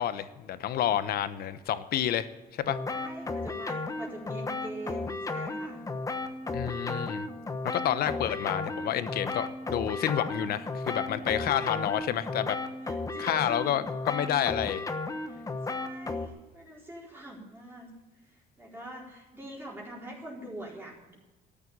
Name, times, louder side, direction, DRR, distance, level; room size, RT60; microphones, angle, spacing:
voice 1, 0.0-2.3 2.5-2.8 6.5-7.3 7.6-12.6 13.2-14.8, left 11 dB, 65° left, 13 dB, 1.0 m, -29 dB
sound 1, 2.7-16.3, left 3 dB, 20° left, 1.1 m, -34 dB
voice 2, 2.9-5.9 11.4-11.7 12.8-13.5 15.3-17.9 18.2-21.1, right 1 dB, 15° right, -4 dB, 4.3 m, -44 dB
13.5 x 8.8 x 8.8 m, 1.1 s
cardioid pair, 110°, 17 cm